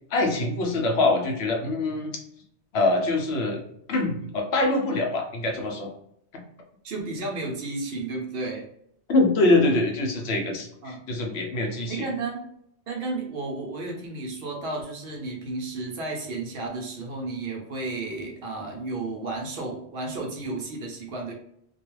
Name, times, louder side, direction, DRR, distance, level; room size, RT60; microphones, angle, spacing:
voice 1, 0.1-2.2 2.7-3.6 3.9-5.9 6.3-6.4 9.1-12.1, left 2 dB, 70° left, 1 dB, 0.8 m, -24 dB
voice 2, 6.8-8.6 10.8-11.0 11.8-12.5 12.9-21.3, right 3 dB, 60° right, 0 dB, 0.8 m, -32 dB
2.3 x 2.2 x 3.0 m, 0.73 s
omnidirectional pair, 1.2 m